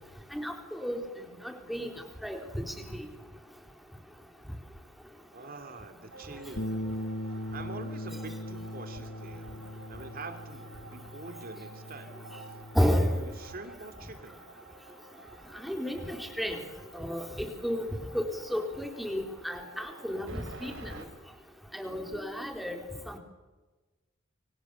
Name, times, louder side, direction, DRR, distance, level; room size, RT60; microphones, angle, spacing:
voice 1, 0.3-1.0 1.4-1.9 2.2-2.6 12.7-13.1 15.6-16.6 16.9-17.9 18.1-20.9 21.7-22.8 23.1-23.2, equal, ahead, 3 dB, 4.1 m, -31 dB
voice 2, 5.3-6.7 7.5-9.5 9.9-12.1 12.8-14.4, right 3 dB, 45° right, 7 dB, 2.8 m, -45 dB
sound 1, 6.1-21.1, right 3 dB, 60° right, 6.7 m, -51 dB
Bass guitar, 6.6-12.8, left 1 dB, 65° left, 1.4 m, -39 dB
29.5 x 25.0 x 7.1 m, 1.2 s
head